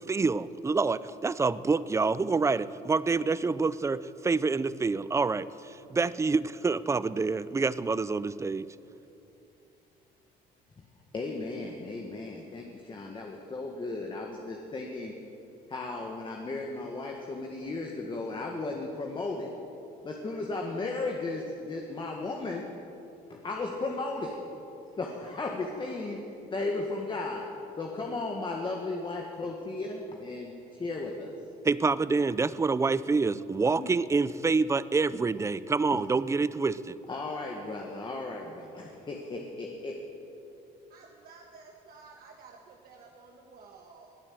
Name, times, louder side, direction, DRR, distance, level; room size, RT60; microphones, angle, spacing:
voice 1, 0.0-8.7 31.6-37.0, right 4 dB, 15° right, 17 dB, 0.4 m, -27 dB
voice 2, 11.1-15.1 15.7-19.5 20.0-22.7 23.3-24.4 25.0-26.2 26.5-27.5 27.8-31.3 33.8-33.9 37.1-40.0, left 3 dB, 30° left, 1 dB, 1.7 m, -35 dB
voice 3, 40.9-44.2, right 4 dB, 60° right, 1 dB, 1.4 m, -52 dB
20.5 x 8.8 x 7.7 m, 2.9 s
cardioid pair, 110°, 17 cm